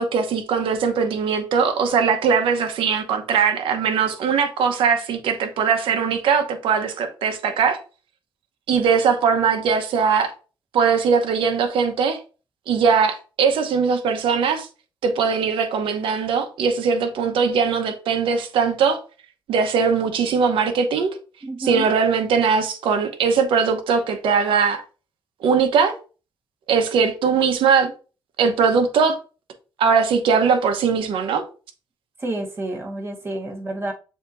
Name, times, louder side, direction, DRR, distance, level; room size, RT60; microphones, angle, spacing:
voice 1, 0.0-7.8 8.7-10.3 10.7-12.2 12.7-14.7 15.0-19.0 19.5-21.1 21.6-24.8 25.4-25.9 26.7-27.9 28.4-29.2 29.8-31.4, right 6 dB, 75° right, 0.9 m, -20 dB
voice 2, 21.4-21.9 32.2-33.9, right 2 dB, 25° right, 1.4 m, -29 dB
7.0 x 2.9 x 2.6 m
cardioid pair, 100°, 9 cm